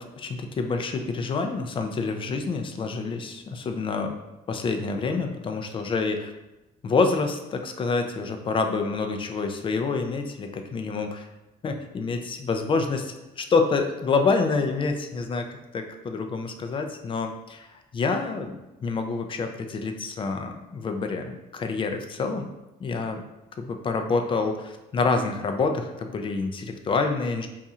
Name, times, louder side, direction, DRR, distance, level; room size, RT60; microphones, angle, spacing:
voice 1, 0.0-4.1 4.5-6.3 6.8-11.3 11.6-15.5 15.7-22.5 22.8-23.2 23.6-27.5, left 4 dB, 30° left, 5 dB, 0.4 m, -27 dB
2.6 x 2.4 x 4.1 m, 1.0 s
cardioid pair, 110°, 17 cm